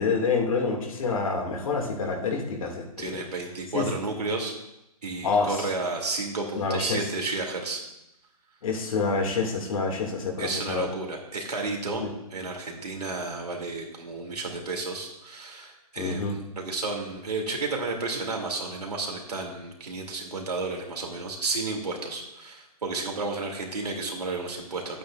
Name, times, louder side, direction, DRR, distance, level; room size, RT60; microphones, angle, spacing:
voice 1, 0.0-3.1 3.7-3.9 5.2-5.7 6.6-7.0 8.6-10.9 12.0-12.1 16.0-16.4, left 4 dB, 60° left, 1 dB, 2.4 m, -27 dB
voice 2, 3.0-4.5 5.0-7.8 10.4-12.0 12.3-25.0, right 3 dB, 90° right, 0 dB, 2.7 m, -32 dB
11.5 x 8.6 x 2.5 m, 0.89 s
hypercardioid pair, 140°, 19 cm